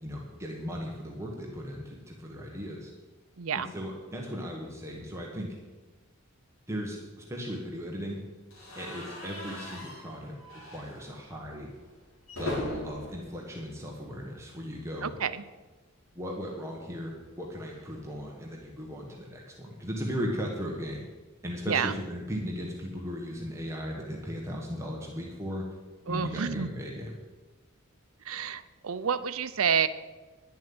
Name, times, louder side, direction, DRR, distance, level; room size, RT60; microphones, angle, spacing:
voice 1, 0.0-2.9 3.5-5.5 6.7-8.2 8.7-10.4 10.7-11.7 12.4-15.2 16.1-21.0 21.4-25.6 26.1-27.2, equal, 15° right, -1 dB, 1.4 m, -37 dB
voice 2, 3.4-3.7 15.0-15.4 21.7-22.0 26.1-26.7 28.2-29.9, right 7 dB, 80° right, 14 dB, 0.6 m, -29 dB
sound 1, 8.5-14.5 14.8-15.0 15.3-15.4 16.7-19.0, left 1 dB, 75° left, 3.6 m, -42 dB
11.0 x 7.5 x 8.8 m, 1.3 s
head